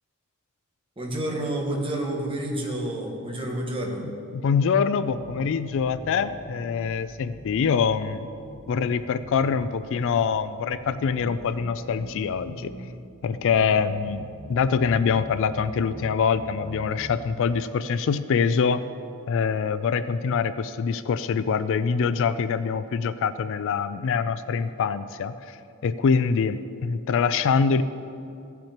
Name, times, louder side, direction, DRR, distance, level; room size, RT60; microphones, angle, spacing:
voice 1, 1.0-4.1, right 1 dB, 25° right, 0 dB, 1.4 m, -29 dB
voice 2, 4.3-8.3 8.7-12.7 13.2-18.8 19.3-25.6 25.8-27.8, left 6 dB, 60° left, 13 dB, 0.3 m, -24 dB
sound 1, 5.1-6.9 7.3-9.9 10.3-12.9 13.3-15.9 16.3-17.0, right 1 dB, 35° left, 2.6 m, -43 dB
16.0 x 5.9 x 4.4 m, 2.6 s
head